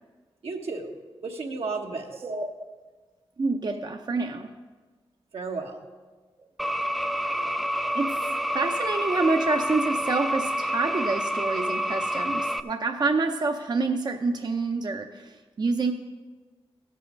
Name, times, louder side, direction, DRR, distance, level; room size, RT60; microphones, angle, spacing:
voice 1, 0.4-1.0 1.2-2.3 5.3-5.8, right 3 dB, 80° right, 1 dB, 1.2 m, -33 dB
voice 2, 3.4-4.5 7.9-15.9, right 3 dB, 45° right, 4 dB, 0.6 m, -27 dB
sound 1, 6.6-12.6, equal, ahead, 0.4 m, -28 dB
15.5 x 5.5 x 5.1 m, 1.4 s
cardioid pair, 65°, 10 cm